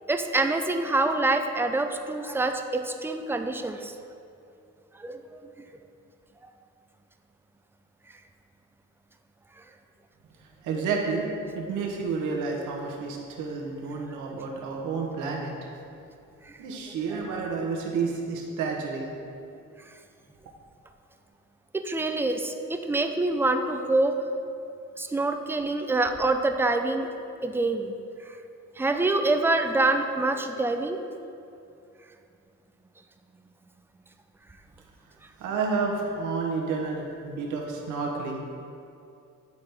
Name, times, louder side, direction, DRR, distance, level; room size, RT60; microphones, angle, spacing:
voice 1, 0.1-3.9 5.0-5.2 16.4-16.5 21.7-24.1 25.0-27.1 27.4-27.9 28.3-28.4 28.8-31.0, right 2 dB, 10° right, 6 dB, 0.4 m, -26 dB
voice 2, 10.4-11.3 11.5-15.5 16.6-19.1 35.4-38.4, right 4 dB, 80° right, -1 dB, 1.0 m, -30 dB
9.4 x 4.0 x 3.4 m, 2.6 s
cardioid pair, 90°, 30 cm